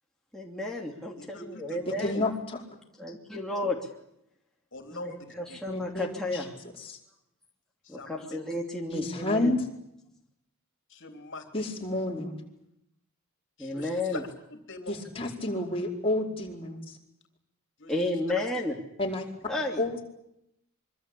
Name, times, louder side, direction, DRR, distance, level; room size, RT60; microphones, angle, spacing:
voice 1, 0.3-2.2 3.0-3.8 4.9-6.5 7.9-9.5 13.6-14.2 17.9-18.7 19.5-20.0, left 2 dB, ahead, -2 dB, 2.9 m, -32 dB
voice 2, 1.2-1.8 2.1-2.2 4.7-5.6 7.8-8.4 10.9-11.7 13.6-15.0 17.8-17.9 18.4-18.5, left 2 dB, 55° left, 6 dB, 3.5 m, -43 dB
voice 3, 2.0-2.6 5.7-7.0 8.9-9.6 11.5-12.4 14.9-17.0 19.0-19.3 19.8-20.0, left 2 dB, 25° left, -1 dB, 4.7 m, -30 dB
25.0 x 24.5 x 8.4 m, 0.79 s
head